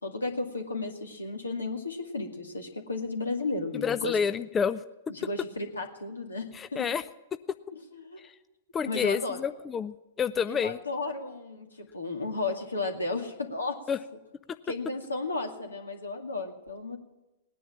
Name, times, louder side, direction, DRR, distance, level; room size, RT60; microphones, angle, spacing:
voice 1, 0.0-4.2 5.2-6.8 7.9-8.2 8.9-9.4 10.5-13.8 14.7-17.0, left 3 dB, 80° left, 3 dB, 2.1 m, -34 dB
voice 2, 3.8-4.8 6.5-7.1 8.2-8.3 8.7-10.8 13.9-14.0, left 6 dB, 20° left, 12 dB, 0.5 m, -29 dB
18.5 x 9.9 x 7.4 m, 1.0 s
figure-of-eight pair, 105°, 0 cm